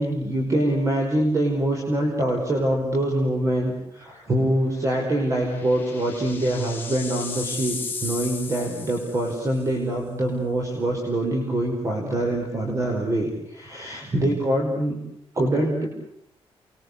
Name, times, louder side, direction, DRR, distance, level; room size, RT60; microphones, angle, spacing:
voice 1, 0.0-15.0 15.3-15.9, right 1 dB, 30° right, 2 dB, 5.3 m, -24 dB
sound 1, 5.0-9.6, left 5 dB, 20° left, 3.9 m, -35 dB
29.5 x 23.0 x 8.3 m, 0.71 s
wide cardioid pair, 145°, 10 cm